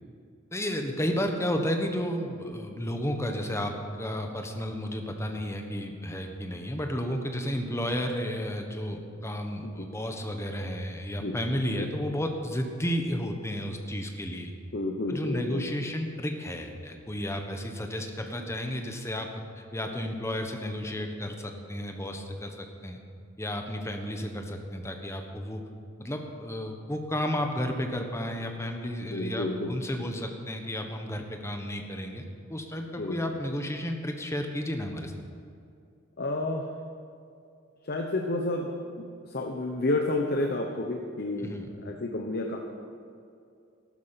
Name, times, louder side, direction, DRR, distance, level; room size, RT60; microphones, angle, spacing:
voice 1, 0.5-14.5 15.1-19.3 19.7-23.0 23.4-25.6 26.0-32.2 32.5-35.1 41.4-41.7, equal, 15° left, 4 dB, 1.2 m, -32 dB
voice 2, 14.7-15.6 29.1-29.8 33.0-33.2 36.2-36.7 37.8-42.6, left 2 dB, 50° left, 2 dB, 1.0 m, -30 dB
14.0 x 12.0 x 5.8 m, 2.4 s
head